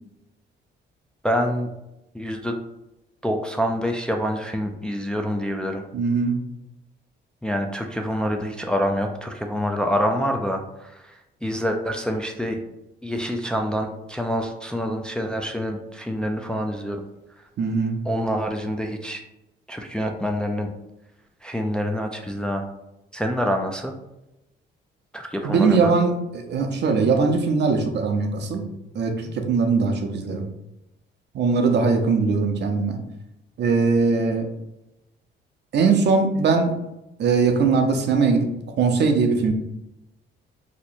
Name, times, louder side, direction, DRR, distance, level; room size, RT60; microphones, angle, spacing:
voice 1, 1.2-1.7 2.1-2.6 3.2-5.8 7.4-12.6 13.0-17.0 18.0-19.2 19.7-20.7 21.4-22.6 23.1-23.9 25.1-25.9, equal, 5° left, 3 dB, 0.3 m, -26 dB
voice 2, 5.9-6.4 17.6-18.0 25.4-28.6 28.9-30.5 31.3-33.0 33.6-34.5 35.7-36.7 37.2-38.5 38.8-39.5, right 4 dB, 60° right, 4 dB, 0.6 m, -20 dB
2.9 x 2.1 x 4.1 m, 0.92 s
cardioid pair, 90°, 20 cm